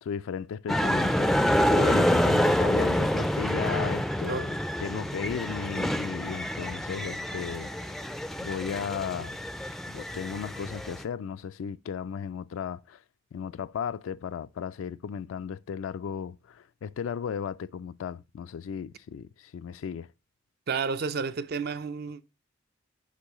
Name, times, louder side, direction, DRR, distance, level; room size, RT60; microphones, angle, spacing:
voice 1, 0.0-8.0 8.4-9.3 9.9-13.0 13.3-20.1, left 7 dB, 90° left, 0.3 m, -35 dB
sound 1, 0.7-11.0, equal, ahead, 0.3 m, -27 dB
voice 2, 20.7-22.2, right 5 dB, 55° right, 0.5 m, -31 dB
8.2 x 5.4 x 3.0 m
head